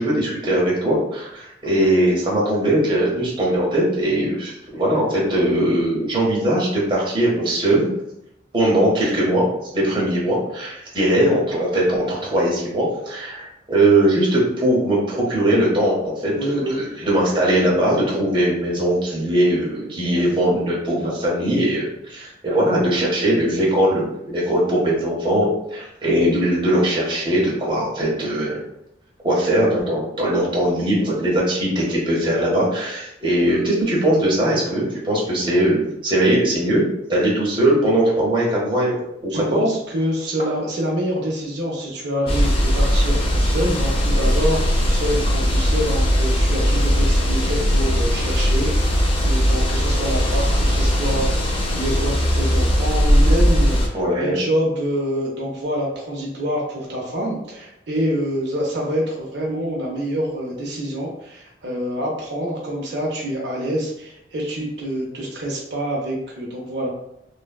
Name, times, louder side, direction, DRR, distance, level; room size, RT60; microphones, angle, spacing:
voice 1, 0.0-7.9 8.5-9.5 9.7-28.6 29.2-36.8 37.1-39.0 39.2-39.6 53.9-54.4, right 1 dB, 25° right, -4 dB, 0.7 m, -20 dB
voice 2, 16.4-16.8 39.3-51.3 51.7-66.9, equal, 65° right, -2 dB, 0.6 m, -26 dB
sound 1, 42.3-53.9, equal, 30° left, 0.4 m, -19 dB
3.2 x 2.1 x 2.2 m, 0.82 s
head